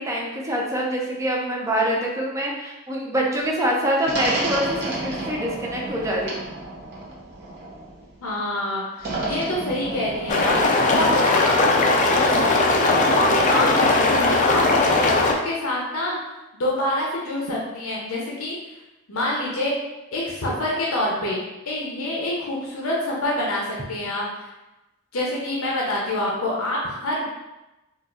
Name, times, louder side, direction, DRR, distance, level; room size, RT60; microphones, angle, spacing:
voice 1, 0.0-6.4, equal, 15° right, -2 dB, 0.5 m, -25 dB
sound 1, 4.0-8.1 9.0-10.7, right 2 dB, 50° right, 0.8 m, -31 dB
voice 2, 8.2-10.6 10.9-11.6 13.1-16.2 16.6-18.5 19.1-19.8 20.1-21.4 21.6-24.5 25.1-27.2, left 1 dB, 70° left, -3 dB, 0.6 m, -26 dB
sound 2, 10.3-15.3, left 2 dB, 35° left, 0.4 m, -19 dB
4.0 x 2.3 x 2.4 m, 1.0 s
head